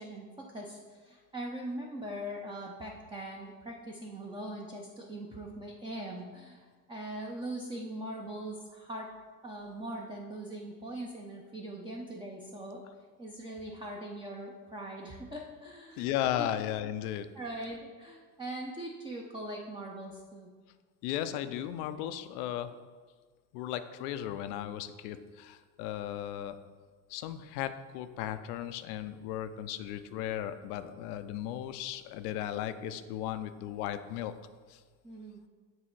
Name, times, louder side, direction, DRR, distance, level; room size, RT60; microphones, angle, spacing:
voice 1, 0.0-6.6 6.9-9.1 9.4-12.8 13.2-16.1 16.4-16.5 17.3-20.5 35.0-35.4, right 1 dB, 10° right, -1 dB, 0.6 m, -41 dB
voice 2, 16.0-17.3 21.0-22.7 23.5-26.6 27.1-34.3 34.7-34.8, left 11 dB, 65° left, 11 dB, 0.6 m, -36 dB
7.6 x 3.1 x 4.5 m, 1.5 s
hypercardioid pair, 75°, 50 cm